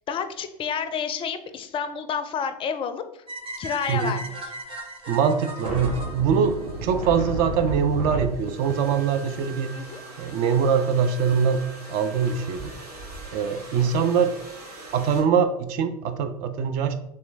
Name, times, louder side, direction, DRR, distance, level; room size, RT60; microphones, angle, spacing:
voice 1, 0.0-3.2 3.6-4.5 9.7-10.0 13.8-14.1, left 6 dB, 25° left, 10 dB, 0.4 m, -30 dB
sound 1, 3.3-7.4, right 1 dB, 25° right, 0.9 m, -38 dB
voice 2, 5.1-9.9 10.2-12.7 13.3-14.3 14.9-16.9, right 6 dB, 50° right, 9 dB, 0.4 m, -23 dB
sound 2, 5.6-15.2, right 2 dB, 85° right, 1.0 m, -36 dB
3.2 x 3.0 x 3.3 m, 0.82 s
hypercardioid pair, 90°, 20 cm